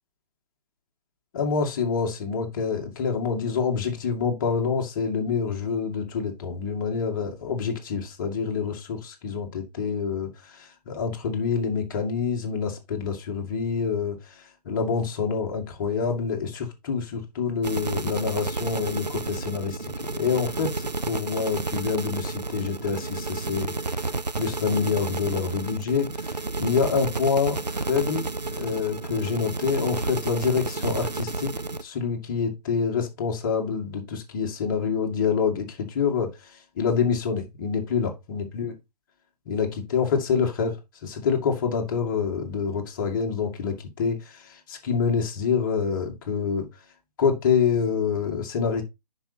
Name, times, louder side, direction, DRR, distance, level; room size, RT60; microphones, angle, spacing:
voice 1, 1.3-24.0 24.4-31.5 31.8-38.8 39.5-46.7 47.2-48.8, left 6 dB, 30° left, 2.2 m, -27 dB
sound 1, 17.6-31.8, right 3 dB, 80° right, 0.8 m, -31 dB
10.0 x 5.6 x 2.8 m
figure-of-eight pair, 140°, 21 cm